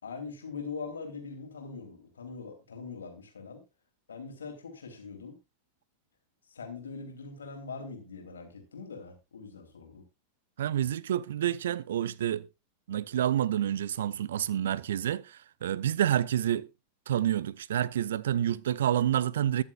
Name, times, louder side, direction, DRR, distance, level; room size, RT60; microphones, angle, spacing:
voice 1, 0.0-3.6 4.1-5.4 6.5-10.0, left 4 dB, 70° left, 3.3 m, -42 dB
voice 2, 10.6-12.5 12.9-16.6 17.1-19.6, right 10 dB, 60° right, 0.5 m, -28 dB
21.5 x 7.2 x 2.4 m
figure-of-eight pair, 90°, 0 cm